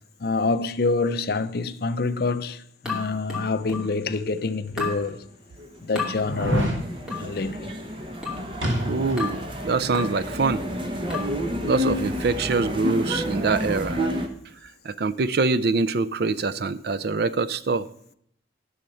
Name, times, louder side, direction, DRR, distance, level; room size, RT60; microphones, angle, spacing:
voice 1, 0.2-5.3 5.8-6.7 7.1-7.8 11.2-11.3, left 3 dB, 50° left, 0.5 m, -27 dB
sound 1, 2.9-4.0 4.8-5.1 6.0-6.2 7.1-7.3 8.2-8.5 9.2-9.5 9.9-10.2 11.1-11.4, left 4 dB, 5° right, 2.4 m, -32 dB
sound 2, 4.3-4.4 5.0-5.1 6.2-6.8 8.6-9.3 9.6-9.7, equal, 85° right, 2.5 m, -25 dB
sound 3, 5.6-14.3, equal, 25° right, 1.0 m, -30 dB
voice 2, 8.8-10.6 11.6-14.0 14.6-17.9, right 4 dB, 55° right, 0.5 m, -24 dB
12.0 x 6.5 x 5.6 m
head